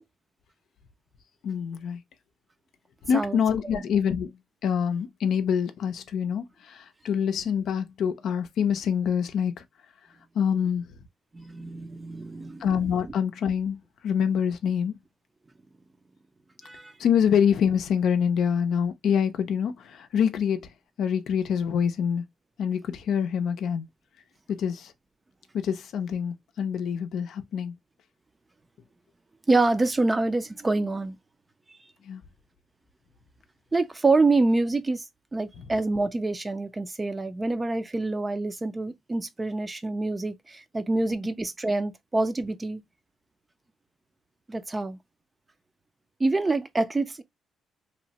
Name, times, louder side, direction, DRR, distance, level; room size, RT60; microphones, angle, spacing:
voice 1, 1.4-2.0 3.0-9.6 10.3-10.8 12.6-15.0 17.0-20.7 21.0-22.2 22.6-23.9 24.6-24.9 25.5-27.7 32.1-32.2, left 7 dB, 70° left, 0.5 m, -26 dB
voice 2, 11.3-12.7 16.6-16.9 29.5-31.2 33.7-35.0 35.3-42.8 44.5-45.0 46.2-47.2, right 2 dB, 25° right, 0.4 m, -26 dB
2.9 x 2.1 x 2.7 m
cardioid pair, 90°, 0 cm